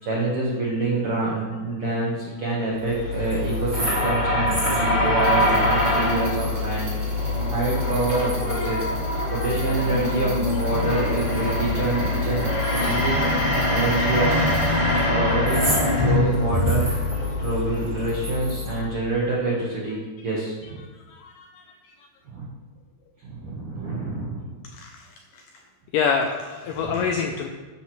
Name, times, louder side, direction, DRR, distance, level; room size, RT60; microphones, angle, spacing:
voice 1, 0.0-7.0 7.5-8.8 9.3-13.2 13.7-16.9 17.4-20.8 22.3-22.5 23.2-24.6 26.7-27.1, right 2 dB, 80° right, -4 dB, 1.2 m, -27 dB
sound 1, 2.7-19.1, left 2 dB, 25° left, 0.9 m, -24 dB
sound 2, 2.8-4.2 4.5-5.5 5.8-5.9 6.3-8.8 9.4-10.7 11.1-13.4 13.7-13.9 14.6-15.0 15.5-15.9 16.3-18.8, right 1 dB, 30° right, 1.2 m, -33 dB
sound 3, 5.2-14.7, right 2 dB, 50° right, 3.0 m, -41 dB
voice 2, 21.1-21.6 24.7-25.1 25.3-25.4 25.9-27.5, left 6 dB, 85° left, 3 dB, 1.9 m, -27 dB
10.0 x 7.4 x 3.1 m, 1.3 s
omnidirectional pair, 4.4 m